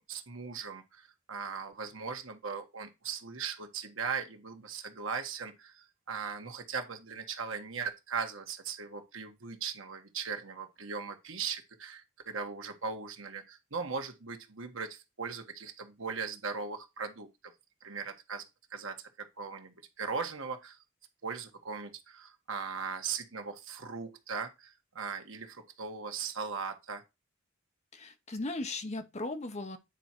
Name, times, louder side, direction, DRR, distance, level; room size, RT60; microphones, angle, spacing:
voice 1, 0.0-17.5 17.8-18.4 18.7-19.0 19.4-20.8 21.2-27.0, right 5 dB, 70° right, 1.6 m, -39 dB
voice 2, 27.9-29.8, left 2 dB, 35° left, 1.0 m, -37 dB
9.1 x 4.6 x 4.5 m
head